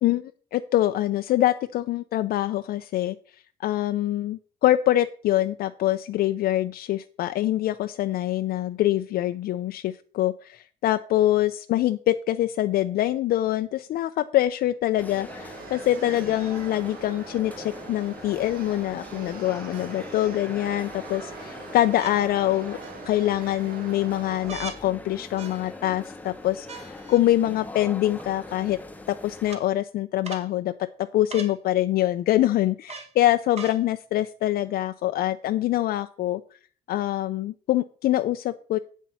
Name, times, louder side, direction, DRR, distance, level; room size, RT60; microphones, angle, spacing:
voice 1, 0.0-3.2 3.6-22.8 23.0-28.8 29.1-30.9 31.1-36.4 36.9-38.8, left 14 dB, 65° left, 9 dB, 0.5 m, -24 dB
sound 1, 15.0-29.6, left 2 dB, 10° left, 1.0 m, -42 dB
sound 2, 15.3-24.7, right 6 dB, 60° right, 1.9 m, -43 dB
sound 3, 18.0-18.1 19.7-20.4 21.9-22.2 22.8-23.3 24.5-24.8 25.4-25.9 26.7-27.2 28.2-28.3 29.5-29.6 30.2-30.5 31.3-31.6 32.9-33.1 33.5-33.8 34.7-34.8, right 4 dB, 40° right, 2.0 m, -40 dB
8.3 x 7.6 x 5.8 m, 0.43 s
cardioid pair, 110°, 17 cm